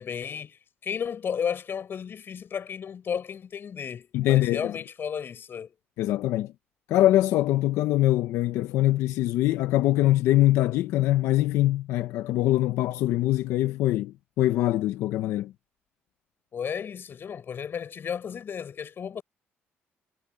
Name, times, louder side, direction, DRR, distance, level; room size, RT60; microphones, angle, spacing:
voice 1, 0.0-5.7 16.5-19.2, left 7 dB, 50° left, 7.3 m, -33 dB
voice 2, 4.1-4.7 6.0-6.5 6.9-15.5, left 15 dB, 80° left, 1.0 m, -23 dB
cardioid pair, 85°, 5 cm